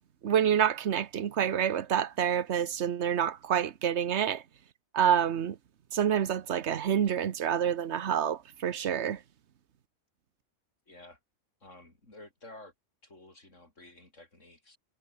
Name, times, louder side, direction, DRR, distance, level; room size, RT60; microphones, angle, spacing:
voice 1, 0.2-4.4 4.9-5.6 5.9-9.2, right 9 dB, 55° right, 1.2 m, -27 dB
voice 2, 10.9-11.2 11.6-12.7 13.0-14.8, left 2 dB, 60° left, 6.5 m, -52 dB
omnidirectional pair, 1.4 m